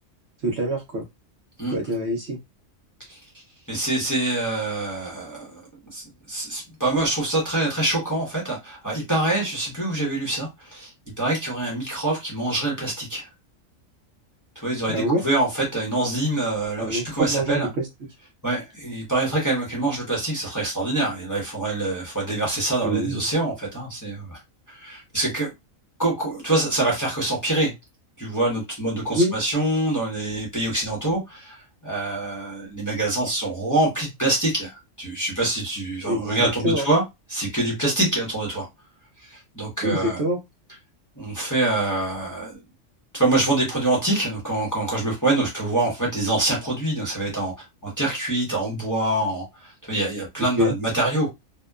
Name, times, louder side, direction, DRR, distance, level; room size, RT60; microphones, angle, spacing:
voice 1, 0.4-1.0 1.7-2.4 14.9-15.2 16.8-17.9 22.8-23.2 29.1-29.3 36.1-36.9 39.8-40.4 50.6-50.7, equal, 60° right, 0.8 m, -25 dB
voice 2, 3.7-5.6 5.9-10.9 11.2-13.3 14.6-17.7 18.4-24.4 24.7-25.5 26.0-27.7 28.2-31.6 31.8-37.0 37.3-38.7 39.2-40.2 41.2-42.6 43.1-47.5 47.8-51.3, right 2 dB, 15° left, 0.8 m, -25 dB
2.8 x 2.1 x 2.2 m
omnidirectional pair, 1.4 m